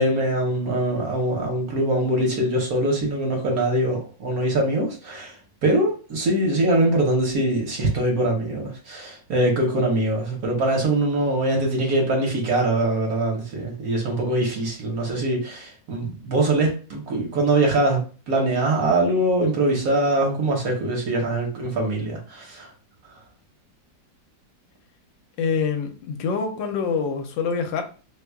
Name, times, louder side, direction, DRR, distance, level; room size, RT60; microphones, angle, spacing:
voice 1, 0.0-5.3 5.6-22.7, right 1 dB, 60° right, 1.2 m, -23 dB
voice 2, 25.4-27.8, left 5 dB, 80° left, 1.3 m, -25 dB
3.1 x 2.3 x 3.3 m
omnidirectional pair, 2.0 m